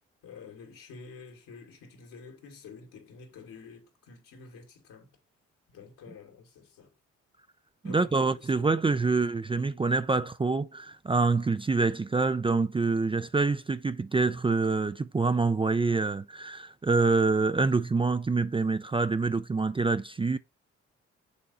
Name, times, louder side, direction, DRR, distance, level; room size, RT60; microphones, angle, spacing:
voice 1, 0.2-5.1 5.7-6.9 7.8-8.6 9.0-9.5, left 5 dB, 75° left, 2.3 m, -49 dB
voice 2, 7.8-20.4, right 3 dB, 15° right, 0.4 m, -26 dB
7.1 x 3.7 x 4.2 m
hypercardioid pair, 50°, 33 cm